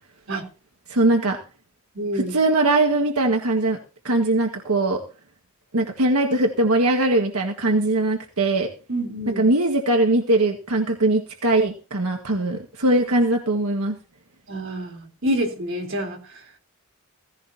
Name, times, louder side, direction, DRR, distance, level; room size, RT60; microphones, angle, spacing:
voice 1, 0.9-1.4 2.1-3.8 4.0-5.0 5.7-8.7 9.3-14.0, right 2 dB, 90° right, 1.8 m, -21 dB
voice 2, 1.9-2.4 8.9-9.4 14.5-16.4, right 1 dB, 60° right, 3.8 m, -28 dB
16.5 x 16.0 x 2.9 m
head